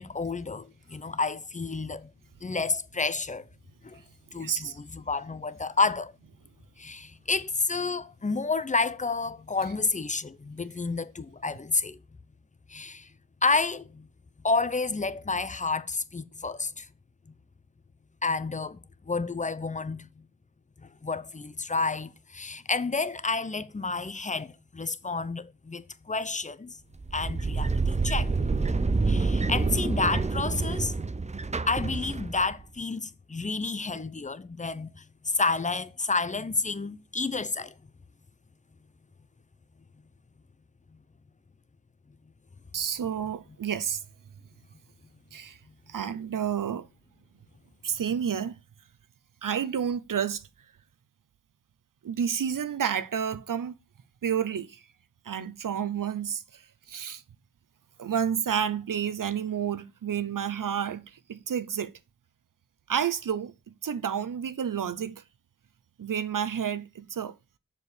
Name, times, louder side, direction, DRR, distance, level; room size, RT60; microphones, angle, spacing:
voice 1, 0.0-2.1 2.4-3.5 3.8-4.0 4.3-6.1 6.8-12.0 12.7-13.1 13.4-14.1 14.4-16.9 18.2-18.8 19.1-20.3 20.8-26.8 27.1-28.3 29.1-31.1 31.7-37.7, left 4 dB, 20° left, 0.7 m, -30 dB
voice 2, 4.4-4.8 42.7-44.0 45.3-45.6 45.9-46.9 47.8-48.6 49.4-50.4 52.0-53.7 54.2-54.8 55.3-56.6 56.9-57.2 58.0-61.9 62.9-63.5 63.8-65.2 66.0-67.3, right 8 dB, 60° right, 0.8 m, -30 dB
sound 1, 27.0-32.6, right 3 dB, 20° right, 0.6 m, -27 dB
6.9 x 5.1 x 6.5 m
cardioid pair, 65°, 36 cm